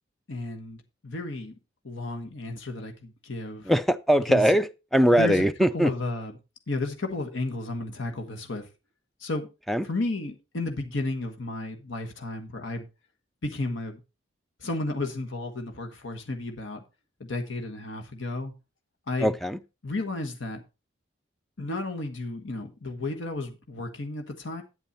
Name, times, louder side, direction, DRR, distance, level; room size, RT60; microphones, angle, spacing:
voice 1, 0.3-1.5 1.8-3.7 4.3-4.4 5.1-5.4 5.7-6.3 6.7-8.7 9.2-9.5 9.8-12.9 13.4-14.0 14.6-16.8 17.2-18.5 19.1-19.3 19.8-20.6 21.6-24.6, left 2 dB, 75° left, 1.4 m, -33 dB
voice 2, 3.6-5.9 9.7-9.9 19.2-19.6, equal, ahead, 0.4 m, -21 dB
9.1 x 8.7 x 4.1 m
head